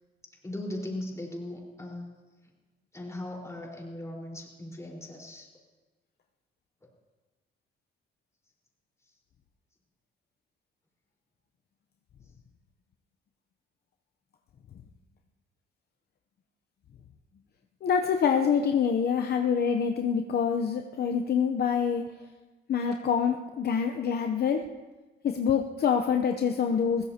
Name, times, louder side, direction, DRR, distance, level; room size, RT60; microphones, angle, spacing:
voice 1, 0.4-2.1 2.9-5.5, left 1 dB, 15° left, -1 dB, 4.4 m, -38 dB
voice 2, 17.8-22.1 22.7-24.7 25.2-27.1, left 7 dB, 55° left, 4 dB, 0.8 m, -26 dB
21.5 x 16.0 x 2.9 m, 1.2 s
cardioid pair, 90°, 20 cm